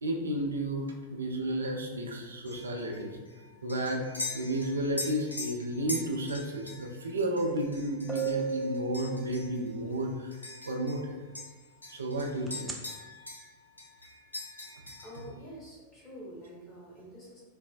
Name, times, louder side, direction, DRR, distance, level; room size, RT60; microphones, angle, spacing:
voice 1, 0.0-3.2 3.6-4.0 4.3-10.4 10.7-11.2 11.9-12.7, right 1 dB, 75° right, 1 dB, 0.5 m, -32 dB
sound 1, 2.4-11.1 11.3-13.5 13.8-15.3, left 2 dB, 80° left, 0.6 m, -42 dB
sound 2, 7.6-7.7 8.1-9.8 12.5-12.7, right 6 dB, 5° right, 0.4 m, -34 dB
voice 2, 15.0-17.4, equal, 20° left, -7 dB, 1.4 m, -47 dB
4.1 x 2.1 x 2.4 m, 1.3 s
figure-of-eight pair, 90°, 0 cm